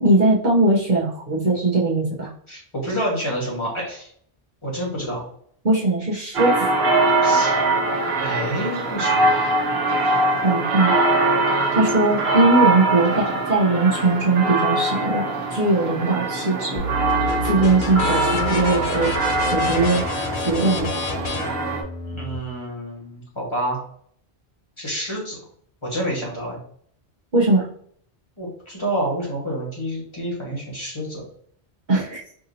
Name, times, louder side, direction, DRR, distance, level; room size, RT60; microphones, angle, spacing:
voice 1, 0.0-2.3 5.6-6.5 10.4-11.0 11.5-16.8 17.4-19.1 19.5-20.0 20.4-20.9 27.3-27.7 31.9-32.2, right 2 dB, 50° right, -5 dB, 0.9 m, -20 dB
voice 2, 2.5-4.1 4.6-5.2 7.2-7.6 8.2-9.6 22.0-23.8 24.8-25.4 25.8-26.6 28.4-31.2, equal, 25° left, -4 dB, 1.5 m, -28 dB
sound 1, 6.3-21.8, right 2 dB, 75° right, 1.0 m, -22 dB
sound 2, 16.8-22.4, left 3 dB, 60° left, 0.6 m, -28 dB
4.8 x 2.7 x 2.7 m, 0.62 s
omnidirectional pair, 1.1 m